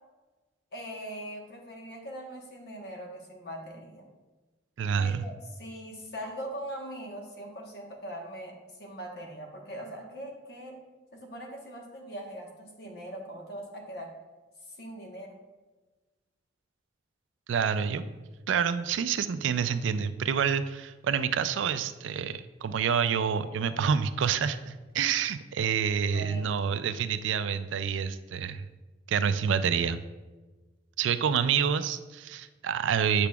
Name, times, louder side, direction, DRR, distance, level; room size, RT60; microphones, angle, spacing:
voice 1, 0.7-4.1 5.0-8.5 8.8-10.7 11.1-14.1 14.7-15.4 26.1-26.7, right 1 dB, 55° left, 1 dB, 1.1 m, -41 dB
voice 2, 4.8-5.3 17.5-28.7 29.1-30.0 31.0-33.3, right 7 dB, 80° right, 12 dB, 0.4 m, -28 dB
8.4 x 5.8 x 2.3 m, 1.2 s
head